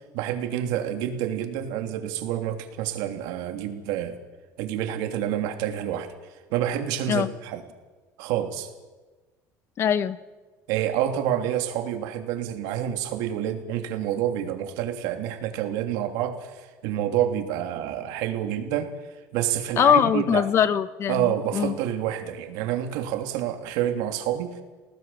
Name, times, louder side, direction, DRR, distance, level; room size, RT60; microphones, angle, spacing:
voice 1, 0.1-4.2 4.6-6.1 6.5-7.6 8.2-8.7 10.7-18.9 19.3-20.4 21.1-24.5, right 11 dB, 80° right, 6 dB, 3.1 m, -28 dB
voice 2, 9.8-10.2 19.8-21.2 21.5-21.7, left 8 dB, 40° left, 14 dB, 1.2 m, -21 dB
29.5 x 18.5 x 7.5 m, 1.3 s
cardioid pair, 135°, 7 cm